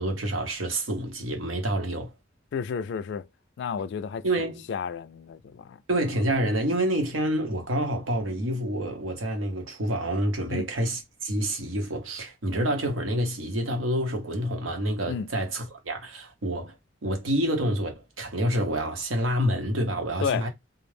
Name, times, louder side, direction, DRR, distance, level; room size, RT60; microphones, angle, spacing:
voice 1, 0.0-2.1 4.2-4.7 5.9-16.7 17.0-20.5, right 1 dB, 85° right, 0.8 m, -28 dB
voice 2, 2.5-3.2 3.6-4.2 4.7-5.8 10.5-10.7 15.1-15.3 20.2-20.5, left 6 dB, 60° left, 0.3 m, -31 dB
2.3 x 2.0 x 3.1 m
head